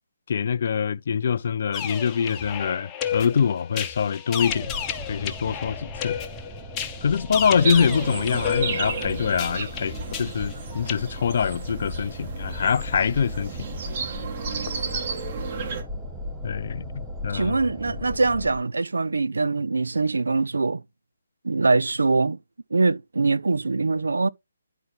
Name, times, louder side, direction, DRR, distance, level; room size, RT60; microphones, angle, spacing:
voice 1, 0.3-4.7 5.1-6.2 7.0-13.7 16.4-16.9 17.2-17.6, left 7 dB, 45° left, 0.4 m, -24 dB
sound 1, 1.7-11.0, left 8 dB, 15° left, 0.8 m, -32 dB
sound 2, 4.4-18.6, left 1 dB, 5° right, 1.1 m, -37 dB
sound 3, 7.6-15.8, right 5 dB, 35° right, 1.6 m, -33 dB
voice 2, 17.3-20.8 21.4-22.4 22.7-24.3, right 3 dB, 65° right, 0.4 m, -23 dB
10.0 x 4.4 x 3.4 m
figure-of-eight pair, 140°, 0 cm